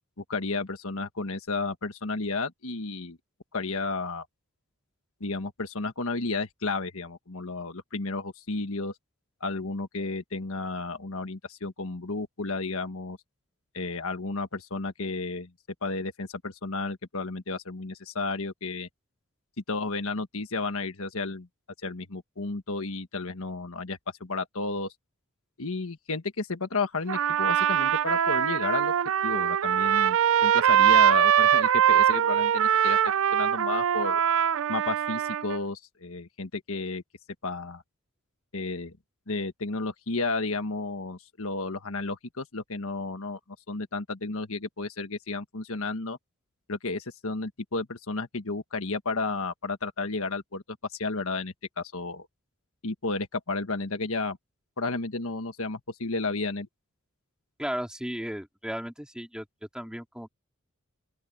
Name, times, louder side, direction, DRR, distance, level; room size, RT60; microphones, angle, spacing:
voice 1, 0.3-3.2 3.5-4.3 5.2-8.9 9.4-13.2 13.7-15.5 15.8-18.9 19.7-21.5 21.8-24.9 25.6-28.9 29.2-34.2 34.7-37.0 37.4-37.8 38.5-38.9 39.3-43.4 43.7-46.2 46.7-50.6 50.9-52.3 52.8-54.4 54.8-56.7, left 3 dB, 70° left, 1.5 m, -32 dB
Trumpet, 27.1-35.6, right 9 dB, 65° right, 0.4 m, -22 dB
voice 2, 57.6-59.5 59.7-60.3, equal, 5° right, 2.9 m, -35 dB
open air
head